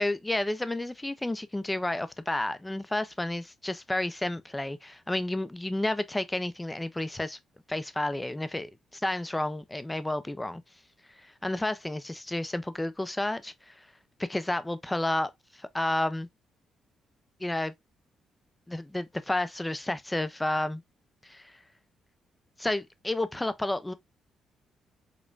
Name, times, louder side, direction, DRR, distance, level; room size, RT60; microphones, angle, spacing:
voice 1, 0.0-7.4 7.7-8.7 9.0-10.6 11.2-13.9 14.2-16.3 17.4-17.7 18.7-20.8 21.2-21.6 22.6-23.9, left 1 dB, 10° left, 0.5 m, -31 dB
5.1 x 2.2 x 2.4 m
cardioid pair, 90°, 0 cm